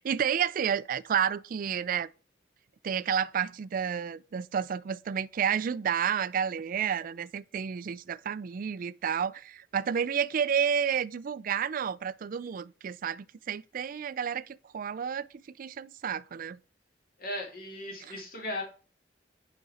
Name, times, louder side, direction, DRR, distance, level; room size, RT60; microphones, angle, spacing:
voice 1, 0.0-2.1 2.8-16.6 18.0-18.1, right 8 dB, 50° right, 0.4 m, -30 dB
voice 2, 17.2-18.6, left 1 dB, 55° left, 2.7 m, -36 dB
6.2 x 5.3 x 4.3 m
head